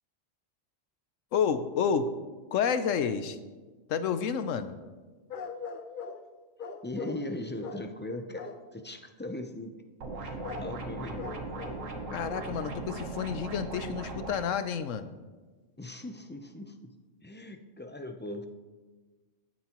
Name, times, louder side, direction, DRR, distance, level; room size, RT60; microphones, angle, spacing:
voice 1, 1.3-2.1 2.5-3.3 3.9-4.8 12.1-15.1, left 7 dB, 85° left, 11 dB, 1.0 m, -29 dB
sound 1, 5.3-6.3 6.6-7.3 7.6-7.9 8.3-8.7 10.4-10.7 11.2-11.9 12.2-12.6 13.0-13.1, left 5 dB, 50° left, 0.7 m, -40 dB
voice 2, 6.8-9.8 10.2-11.3 12.0-12.1 15.8-16.9 17.2-18.5, left 1 dB, 15° left, 6 dB, 0.4 m, -39 dB
sound 2, 10.0-14.4, right 3 dB, 85° right, 1.6 m, -38 dB
15.5 x 9.4 x 3.0 m, 1.3 s
omnidirectional pair, 1.3 m